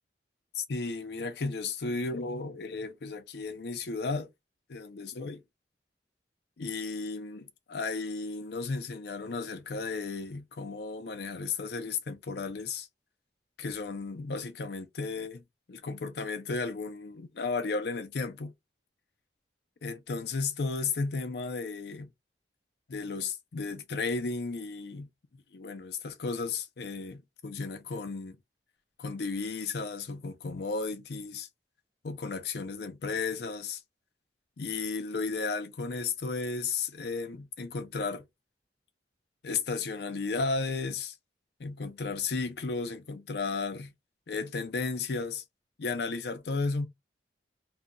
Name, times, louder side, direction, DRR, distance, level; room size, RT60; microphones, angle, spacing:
voice 1, 0.5-4.3 4.7-5.4 6.6-12.9 13.6-15.4 15.7-18.5 19.8-22.1 22.9-28.4 29.0-31.5 32.0-33.8 34.6-38.2 39.4-41.2 41.6-43.9 44.3-45.4 45.8-46.9, left 4 dB, 65° left, 0.5 m, -34 dB
2.8 x 2.5 x 2.2 m
head